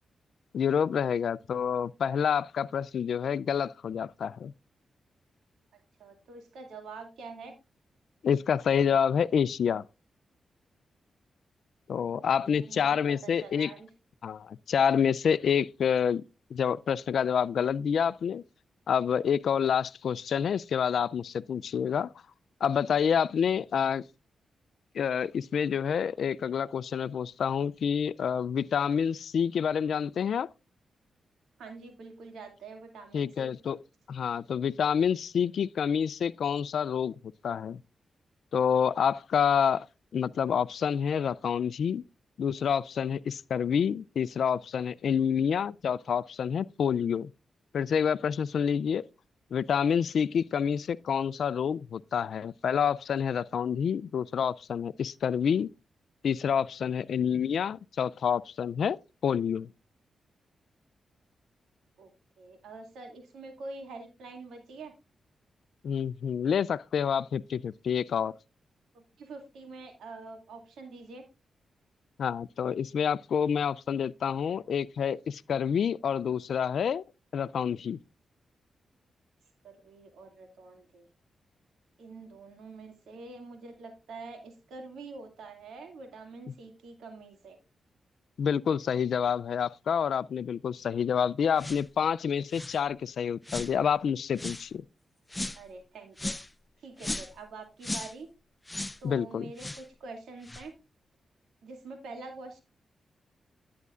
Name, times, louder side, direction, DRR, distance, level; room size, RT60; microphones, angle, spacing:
voice 1, 0.5-4.5 8.2-9.8 11.9-13.7 14.2-16.2 16.5-18.4 18.9-22.1 22.6-24.0 24.9-30.5 33.1-33.8 34.1-37.1 37.4-37.8 38.5-39.9 40.1-42.0 42.4-47.3 47.7-49.0 49.5-55.7 56.2-59.7 65.8-68.3 72.2-77.0 77.3-78.0 88.4-94.8 99.0-99.5, left 7 dB, 75° left, 0.4 m, -28 dB
voice 2, 6.0-7.5 12.1-13.9 31.6-33.5 62.0-62.1 62.4-64.9 68.9-71.3 79.6-81.1 82.0-87.6 95.6-96.4 96.8-98.3 99.0-100.7 101.6-102.6, right 3 dB, 85° right, 2.3 m, -46 dB
sound 1, 91.6-91.9 92.5-92.8 93.4-93.7 94.4-94.7 95.3-95.6 96.2-96.5 97.0-97.4 97.8-98.1 98.7-99.0 99.6-99.8 100.4-100.7, left 1 dB, 15° left, 0.6 m, -36 dB
11.0 x 9.3 x 2.4 m
cardioid pair, 65°, 0 cm